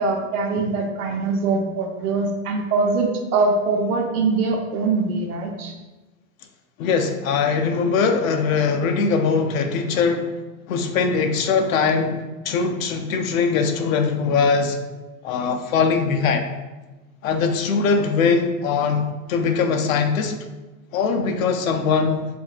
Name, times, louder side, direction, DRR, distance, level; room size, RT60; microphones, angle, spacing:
voice 1, 0.0-5.7, right 3 dB, 80° right, 1 dB, 1.0 m, -22 dB
voice 2, 6.8-10.3 10.7-14.8 15.2-16.5 17.2-20.4 20.9-22.3, left 5 dB, 65° left, 6 dB, 0.7 m, -21 dB
7.8 x 2.6 x 2.4 m, 1.1 s
supercardioid pair, 150°, 44 cm